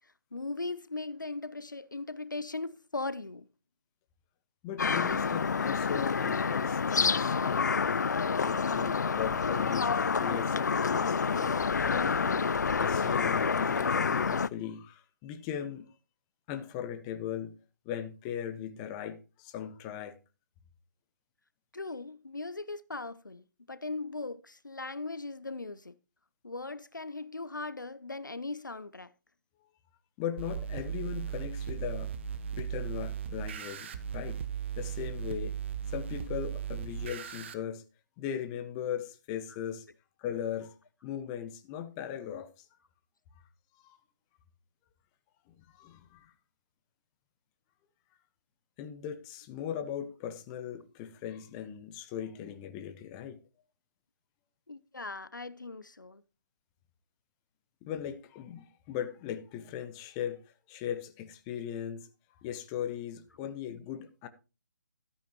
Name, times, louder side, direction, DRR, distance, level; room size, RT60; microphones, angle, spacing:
voice 1, 0.3-3.5 21.7-25.9 26.4-29.1 54.7-56.2, left 3 dB, 85° left, 0.8 m, -39 dB
voice 2, 4.6-7.7 8.4-12.5 12.8-15.9 16.5-17.5 17.8-20.1 30.2-32.1 32.5-34.4 34.8-35.5 35.9-37.8 38.2-39.8 40.2-40.7 41.0-42.6 43.8-44.0 45.7-46.3 48.8-53.4 57.8-60.4 60.7-62.1 62.4-64.3, left 9 dB, 20° left, 1.1 m, -38 dB
sound 1, 4.8-14.5, left 5 dB, 65° left, 0.4 m, -28 dB
sound 2, 30.4-37.5, right 8 dB, 35° right, 1.2 m, -37 dB
13.0 x 10.0 x 2.9 m
figure-of-eight pair, 145°, 10 cm